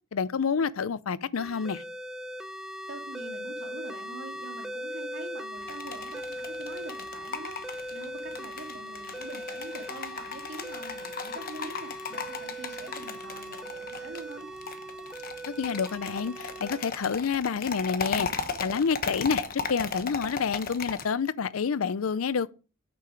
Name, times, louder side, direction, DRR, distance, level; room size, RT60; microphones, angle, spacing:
voice 1, 0.1-1.8 15.5-18.3 18.6-19.4 19.7-22.5, left 6 dB, 90° left, 0.5 m, -28 dB
sound 1, 1.4-16.9, equal, 5° right, 0.6 m, -40 dB
voice 2, 2.9-14.5, right 2 dB, 60° right, 2.6 m, -44 dB
sound 2, 5.6-21.0, left 5 dB, 45° left, 1.1 m, -37 dB
8.9 x 6.9 x 5.0 m
head